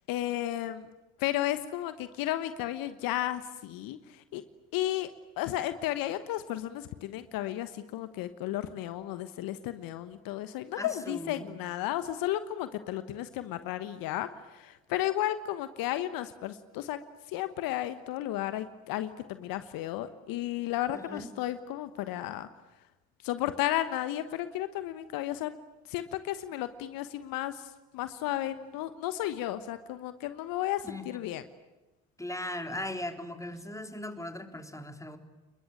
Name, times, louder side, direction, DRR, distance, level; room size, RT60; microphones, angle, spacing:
voice 1, 0.1-0.9 1.2-4.4 4.7-5.1 5.4-17.0 17.3-22.5 23.2-25.6 25.8-31.4, left 13 dB, 65° left, 12 dB, 1.2 m, -33 dB
voice 2, 10.7-11.5 20.9-21.3 30.8-31.2 32.2-35.2, left 1 dB, 10° left, 5 dB, 3.7 m, -38 dB
29.5 x 22.0 x 8.9 m, 1.1 s
hypercardioid pair, 50°, 37 cm